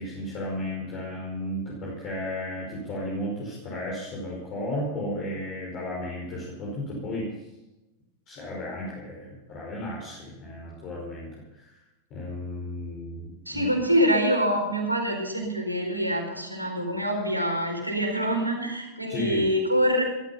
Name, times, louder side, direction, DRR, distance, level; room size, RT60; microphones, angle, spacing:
voice 1, 0.0-7.3 8.3-11.7 12.1-13.7 19.1-19.5, left 1 dB, 35° left, -3 dB, 5.3 m, -34 dB
voice 2, 13.5-20.0, equal, 85° right, 2 dB, 4.5 m, -25 dB
17.5 x 14.0 x 5.6 m, 1.0 s
figure-of-eight pair, 90°, 0 cm